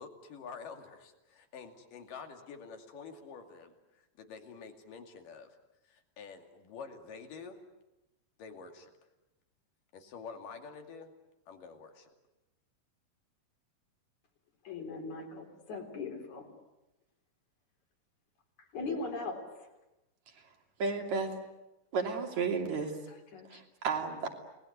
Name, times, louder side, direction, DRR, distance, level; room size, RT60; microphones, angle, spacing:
voice 1, 0.0-5.5 5.9-7.6 8.4-8.9 9.9-11.1 11.5-12.1, left 5 dB, 75° left, 5 dB, 4.1 m, -48 dB
voice 2, 14.6-16.5 18.6-19.7 23.3-23.6, left 3 dB, 60° left, 4 dB, 5.0 m, -40 dB
voice 3, 20.8-21.3 21.9-22.9 23.5-24.3, right 5 dB, 60° right, 3 dB, 4.2 m, -32 dB
29.5 x 20.0 x 9.6 m, 0.98 s
omnidirectional pair, 3.8 m